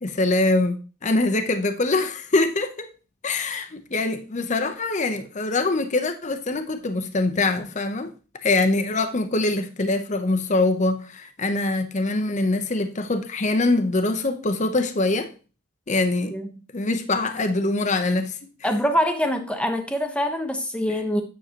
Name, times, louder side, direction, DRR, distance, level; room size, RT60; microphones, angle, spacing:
voice 1, 0.0-2.9 3.2-8.1 8.4-15.3 15.9-16.4 16.7-18.4, left 2 dB, 35° left, 0.7 m, -23 dB
voice 2, 18.6-21.2, equal, 5° left, 0.9 m, -24 dB
9.2 x 6.4 x 2.9 m
head